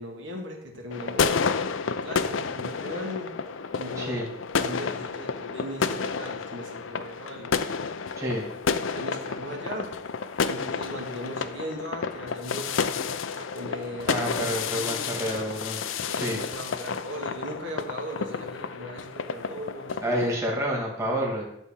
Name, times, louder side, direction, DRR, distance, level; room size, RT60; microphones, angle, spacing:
voice 1, 0.0-1.4 2.0-3.3 3.8-4.2 4.5-7.6 8.9-9.9 10.5-12.9 13.3-14.2 14.7-15.6 16.2-20.0, equal, 70° right, 0 dB, 2.0 m, -38 dB
sound 1, 0.9-20.3, left 5 dB, 80° left, 0.6 m, -30 dB
voice 2, 14.1-15.8 16.1-16.4 20.0-21.4, equal, 15° right, -2 dB, 2.3 m, -28 dB
12.0 x 4.2 x 7.4 m, 0.79 s
head